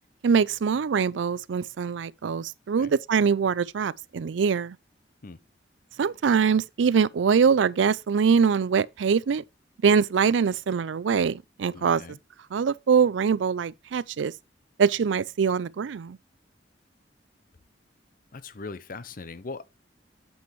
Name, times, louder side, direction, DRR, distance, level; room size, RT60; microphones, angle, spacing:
voice 1, 0.2-4.8 6.0-9.4 9.8-12.0 12.5-14.3 14.8-16.2, right 6 dB, 80° right, 0.4 m, -23 dB
voice 2, 11.7-12.2 18.3-19.6, left 3 dB, 50° left, 0.7 m, -40 dB
8.4 x 7.9 x 3.1 m
head